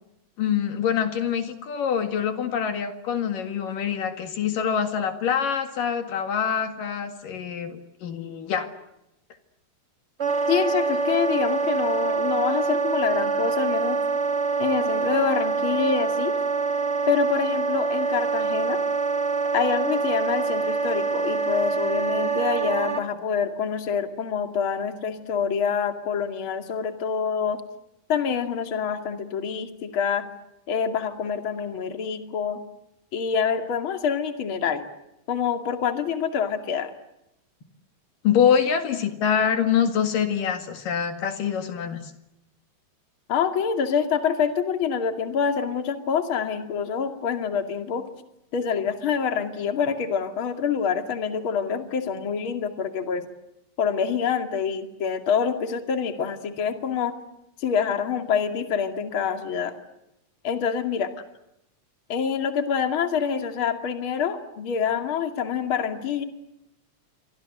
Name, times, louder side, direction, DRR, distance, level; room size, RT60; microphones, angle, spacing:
voice 1, 0.4-8.7 38.2-42.1, left 8 dB, 70° left, 8 dB, 3.6 m, -25 dB
Wind instrument woodwind instrument, 10.2-23.0, right 4 dB, 55° right, 0.7 m, -25 dB
voice 2, 10.5-14.0 14.6-16.3 17.1-18.8 19.5-27.6 28.1-30.3 30.7-32.6 33.1-34.8 35.3-36.9 43.3-48.0 48.5-53.3 53.8-57.1 57.6-59.7 60.4-61.1 62.1-66.2, left 7 dB, 40° left, 7 dB, 2.9 m, -26 dB
29.0 x 24.5 x 7.8 m, 0.85 s
omnidirectional pair, 4.1 m